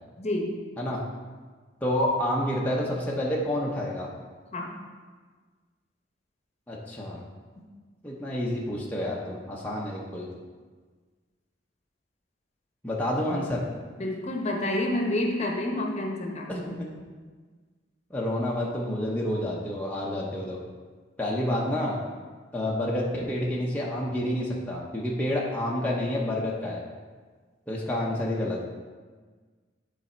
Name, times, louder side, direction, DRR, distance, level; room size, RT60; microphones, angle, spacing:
voice 1, 0.2-0.5 4.5-4.7 14.0-16.5, left 1 dB, 35° left, 1 dB, 0.9 m, -28 dB
voice 2, 1.8-4.1 6.7-7.2 8.0-10.3 12.8-13.6 16.5-16.9 18.1-20.6 21.2-22.0 22.5-26.8 27.7-28.6, left 1 dB, 10° left, -5 dB, 0.7 m, -29 dB
9.6 x 4.1 x 4.3 m, 1.5 s
head